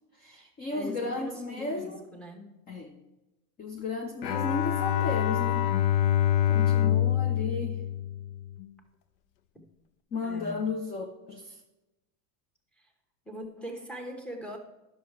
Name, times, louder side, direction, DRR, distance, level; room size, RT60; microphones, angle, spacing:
voice 1, 0.2-2.0 2.7-3.0 3.6-5.7 6.5-7.8 10.1-11.6, left 3 dB, 20° left, 4 dB, 0.5 m, -34 dB
voice 2, 0.7-2.5 10.2-10.7 12.8-12.9 13.2-14.6, equal, ahead, 2 dB, 1.0 m, -41 dB
Bowed string instrument, 4.2-8.7, left 11 dB, 80° left, 0.8 m, -26 dB
10.5 x 6.6 x 4.6 m, 1.0 s
supercardioid pair, 145°, 49 cm